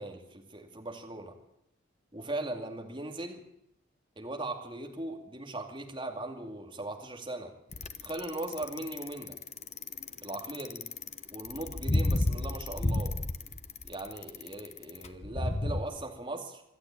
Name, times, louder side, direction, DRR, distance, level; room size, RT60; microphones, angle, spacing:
voice 1, 0.0-1.4 2.1-3.4 4.2-7.5 8.0-9.4 10.2-10.9 11.3-13.2 13.8-16.6, right 2 dB, 25° right, 2 dB, 2.5 m, -39 dB
Bicycle, 7.7-15.8, left 2 dB, 35° left, 1.0 m, -31 dB
26.0 x 11.5 x 8.8 m, 0.78 s
head